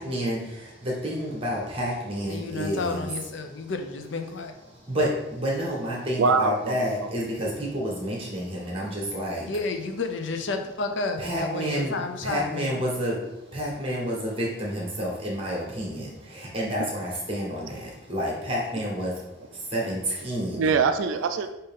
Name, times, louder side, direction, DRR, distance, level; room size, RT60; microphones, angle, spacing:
voice 1, 0.0-3.1 3.4-3.7 4.7-9.5 11.2-20.7, equal, 25° right, -3 dB, 1.2 m, -30 dB
voice 2, 2.3-4.5 9.5-12.8, left 3 dB, 65° left, 6 dB, 0.5 m, -31 dB
voice 3, 6.2-7.1 20.5-21.5, right 4 dB, 80° right, 9 dB, 0.3 m, -23 dB
5.4 x 2.7 x 3.6 m, 0.94 s
head